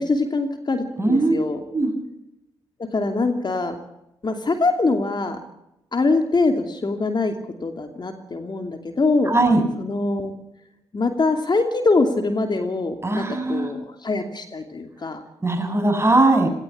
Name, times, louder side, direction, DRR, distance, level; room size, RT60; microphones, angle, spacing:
voice 1, 0.0-1.6 2.8-3.7 4.2-5.4 5.9-7.3 7.6-9.3 9.8-10.3 10.9-15.2, left 3 dB, 40° left, 6 dB, 2.7 m, -23 dB
voice 2, 1.0-1.4 1.7-1.9 9.3-9.6 13.0-13.7 15.4-16.5, right 2 dB, 20° right, 5 dB, 7.3 m, -19 dB
18.5 x 17.5 x 8.7 m, 0.86 s
hypercardioid pair, 40°, 12 cm